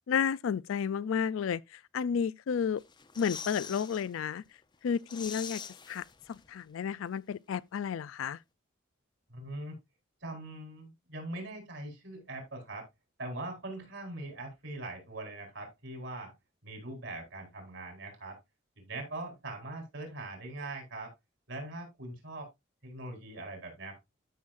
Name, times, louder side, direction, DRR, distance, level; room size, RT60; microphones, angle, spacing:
voice 1, 0.0-2.8 3.2-4.4 4.8-5.6 5.9-8.4, left 7 dB, 80° left, 0.4 m, -32 dB
sound 1, 2.8-4.1 4.5-4.6 4.9-6.6 6.9-7.0, left 7 dB, 20° left, 0.6 m, -44 dB
voice 2, 9.3-9.8 10.2-12.9 13.2-16.3 16.6-18.4 18.8-21.1 21.5-22.5 22.8-24.0, right 2 dB, 65° right, 4.3 m, -41 dB
12.5 x 6.3 x 2.5 m
head